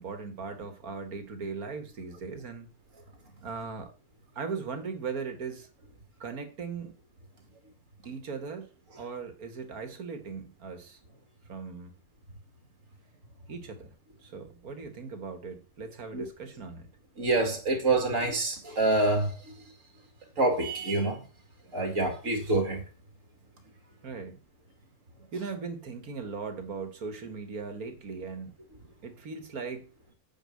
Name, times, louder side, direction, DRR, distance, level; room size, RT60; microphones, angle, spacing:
voice 1, 0.0-2.7 3.4-3.9 4.4-5.7 6.2-7.0 8.1-8.7 9.0-11.0 11.5-11.9 13.5-13.9 14.2-16.9 24.0-24.4 25.3-28.5 29.0-29.9, right 5 dB, 85° right, 2.1 m, -38 dB
voice 2, 17.2-19.4 20.4-21.2 21.7-22.8, right 2 dB, 60° right, 2.7 m, -26 dB
9.0 x 4.9 x 7.7 m
omnidirectional pair, 1.5 m